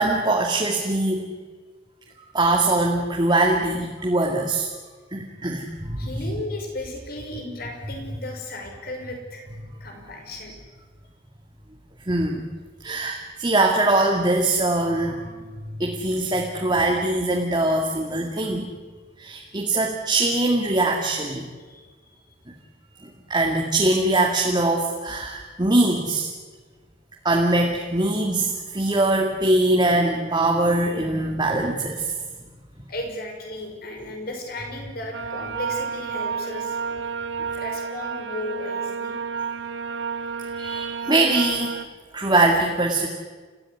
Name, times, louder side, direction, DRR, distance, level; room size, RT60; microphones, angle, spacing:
voice 1, 0.0-1.3 2.3-4.7 5.1-6.1 12.1-12.4 12.8-18.7 19.2-21.5 23.0-26.3 27.2-32.1 40.5-41.8 42.1-43.1, right 2 dB, 25° right, 0 dB, 2.2 m, -22 dB
voice 2, 6.0-9.5 9.8-10.6 21.6-22.2 32.9-36.8 37.5-39.1 40.5-40.9, left 1 dB, 50° left, 2 dB, 6.0 m, -35 dB
sound 1, 35.1-41.8, right 6 dB, 75° right, 0.9 m, -31 dB
29.5 x 15.0 x 9.8 m, 1.4 s
head